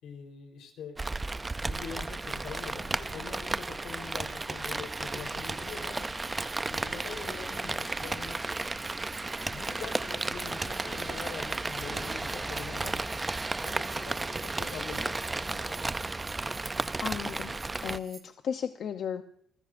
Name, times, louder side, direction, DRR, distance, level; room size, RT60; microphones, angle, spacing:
voice 1, 0.0-1.0 1.6-6.1 6.7-8.4 9.5-13.2 13.6-15.8, left 6 dB, 85° left, 4 dB, 4.1 m, -43 dB
Rain, 1.0-18.0, right 3 dB, 15° right, 0.5 m, -34 dB
sound 1, 2.2-18.2, right 5 dB, 35° right, 2.4 m, -53 dB
voice 2, 17.0-17.6 17.8-19.2, left 7 dB, 55° left, 7 dB, 0.8 m, -34 dB
28.0 x 14.5 x 2.6 m, 0.65 s
cardioid pair, 140°, 0 cm